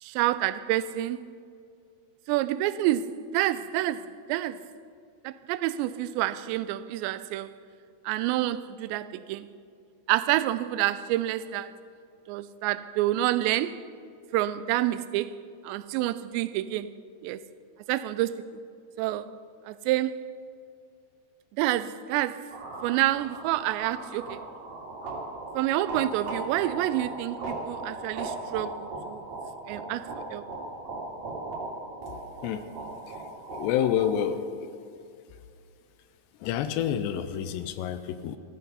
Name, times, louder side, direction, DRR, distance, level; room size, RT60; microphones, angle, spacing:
voice 1, 0.0-1.3 2.3-4.6 5.2-7.6 8.0-9.5 10.1-11.7 12.3-13.9 14.3-16.9 17.2-17.4 17.9-18.5 19.0-19.3 19.7-20.3 21.6-22.4 22.8-24.4 25.5-29.2 29.7-30.4, right 14 dB, 90° right, 2.8 m, -28 dB
sound 1, 22.5-34.1, right 2 dB, 45° right, 3.3 m, -38 dB
voice 2, 33.5-34.4 36.4-38.4, left 9 dB, 85° left, 2.8 m, -28 dB
16.0 x 14.0 x 5.5 m
omnidirectional pair, 5.0 m